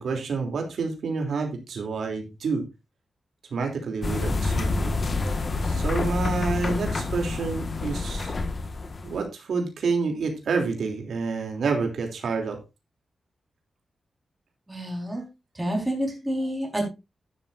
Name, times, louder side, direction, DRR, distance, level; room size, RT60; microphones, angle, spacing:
voice 1, 0.0-2.7 3.5-4.9 5.6-8.3 9.0-12.6, right 4 dB, 75° right, 3 dB, 3.2 m, -28 dB
sound 1, 4.0-9.2, left 3 dB, 35° left, 1.7 m, -28 dB
voice 2, 14.7-15.2 15.6-16.8, equal, 10° right, 0 dB, 4.7 m, -28 dB
12.5 x 11.0 x 2.7 m, 0.25 s
wide cardioid pair, 165°, 0 cm